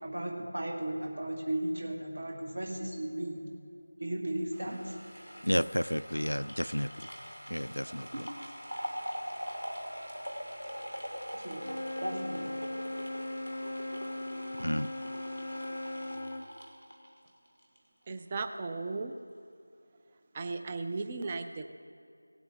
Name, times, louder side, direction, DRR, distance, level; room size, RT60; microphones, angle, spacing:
voice 1, 0.0-3.4 4.0-4.9 8.1-8.2 11.3-11.6 12.0-12.6, right 1 dB, 65° right, 0 dB, 2.2 m, -35 dB
sound 1, 4.5-17.8 18.1-18.2, equal, 85° right, 2.4 m, -43 dB
voice 2, 5.4-7.1 7.5-8.3 14.6-14.9, equal, 90° left, 15 dB, 0.3 m, -31 dB
Wind instrument woodwind instrument, 11.5-16.5, left 1 dB, 35° left, 0.6 m, -39 dB
voice 3, 18.1-19.2 20.3-21.7, right 3 dB, 20° right, 7 dB, 0.4 m, -36 dB
18.0 x 8.1 x 3.5 m, 2.5 s
figure-of-eight pair, 170°, 0 cm